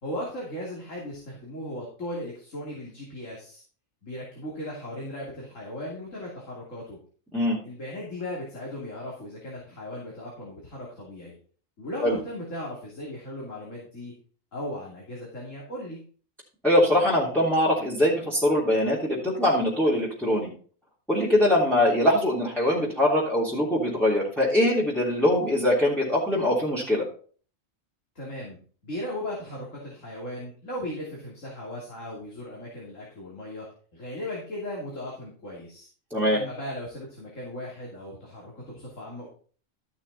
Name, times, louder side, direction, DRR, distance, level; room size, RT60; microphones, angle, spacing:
voice 1, 0.0-3.6 4.0-7.0 7.6-11.3 11.8-14.1 14.5-16.0 28.1-28.6 28.8-33.7 33.9-35.9 36.3-39.3, left 1 dB, 70° left, -3 dB, 3.3 m, -37 dB
voice 2, 16.6-20.5 21.1-27.0 36.1-36.4, left 1 dB, ahead, -7 dB, 3.2 m, -22 dB
13.5 x 6.4 x 4.1 m, 0.42 s
omnidirectional pair, 1.4 m